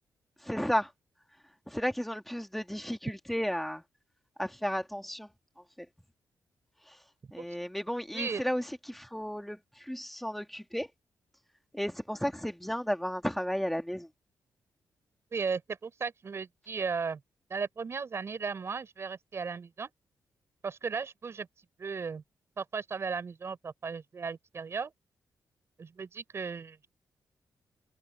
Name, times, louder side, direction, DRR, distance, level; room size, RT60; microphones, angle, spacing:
voice 1, 0.5-0.9 1.7-3.8 4.4-5.3 7.3-9.6 9.9-10.9 11.7-14.1, equal, ahead, 2.2 m, -33 dB
voice 2, 8.1-8.4 15.3-17.2 17.5-19.9 20.6-21.5 21.8-22.2 22.6-24.9 25.8-26.8, right 5 dB, 40° right, 5.6 m, -36 dB
wide cardioid pair, 135°, 7 cm